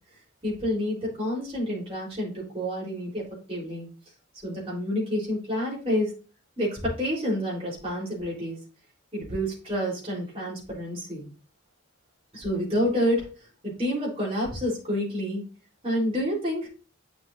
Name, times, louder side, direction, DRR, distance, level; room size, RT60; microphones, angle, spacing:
voice 1, 0.4-3.9 4.4-6.1 6.6-8.6 9.1-11.3 12.3-13.3 13.6-15.5 15.8-16.7, equal, 25° right, -5 dB, 3.9 m, -28 dB
9.3 x 6.1 x 2.6 m, 0.36 s
head